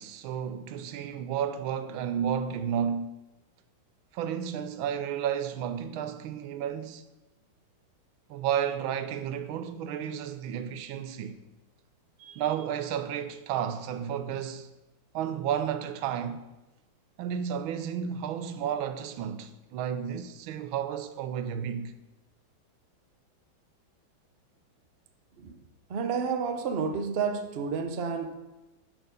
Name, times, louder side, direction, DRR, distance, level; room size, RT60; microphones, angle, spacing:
voice 1, 0.0-3.1 4.1-7.0 8.3-11.4 12.4-14.7 15.1-16.4 17.2-21.9, right 8 dB, 90° right, 1.4 m, -32 dB
voice 2, 25.9-28.4, right 5 dB, 75° right, 0.5 m, -30 dB
10.5 x 4.5 x 5.2 m
omnidirectional pair, 2.1 m